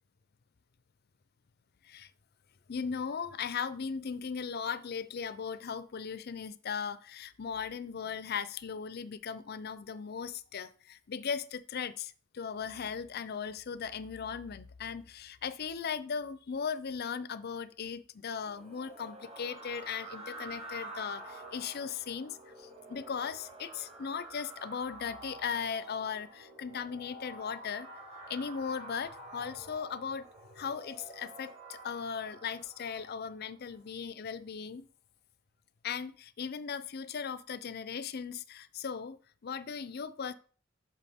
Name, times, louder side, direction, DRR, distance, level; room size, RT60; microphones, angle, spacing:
voice 1, 2.7-27.9 28.3-30.3 30.6-34.9 35.8-40.3, left 6 dB, 50° left, 0.5 m, -38 dB
sound 1, 18.4-33.5, right 1 dB, 30° right, 1.6 m, -49 dB
9.1 x 6.3 x 3.5 m
head